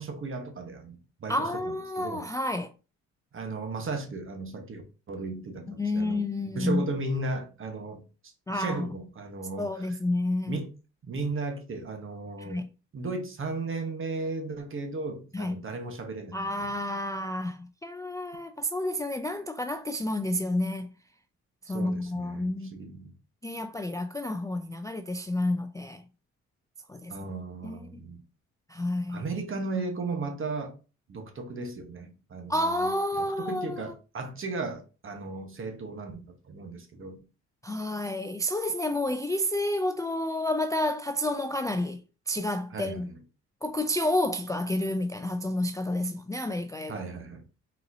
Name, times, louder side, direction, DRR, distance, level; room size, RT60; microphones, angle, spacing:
voice 1, 0.0-1.5 2.0-2.3 3.3-4.8 5.1-8.0 8.5-10.0 10.5-10.7 11.0-12.6 12.9-16.7 21.7-23.1 27.1-28.3 29.1-30.7 31.1-37.2 42.7-43.1 46.9-47.4, right 3 dB, 45° right, 1.1 m, -35 dB
voice 2, 1.3-2.7 5.7-6.8 8.5-8.9 9.6-10.6 12.4-12.7 15.3-15.6 16.3-20.9 21.7-22.8 23.4-26.0 26.9-27.1 27.6-28.0 28.7-29.2 32.5-33.9 37.6-42.0 42.3-43.1 43.6-47.0, left 1 dB, 10° left, 0.3 m, -30 dB
4.2 x 3.9 x 2.7 m
cardioid pair, 90°, 30 cm